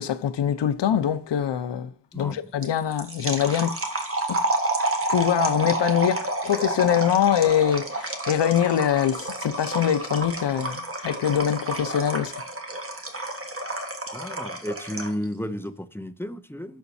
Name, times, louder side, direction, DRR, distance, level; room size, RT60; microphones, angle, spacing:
voice 1, 0.0-3.7 4.3-4.4 5.1-12.3, left 9 dB, 90° left, 0.7 m, -23 dB
sound 1, 2.6-15.2, right 2 dB, 35° right, 1.5 m, -30 dB
voice 2, 14.1-16.8, equal, 5° left, 0.5 m, -33 dB
12.0 x 4.2 x 2.7 m
wide cardioid pair, 120°, 41 cm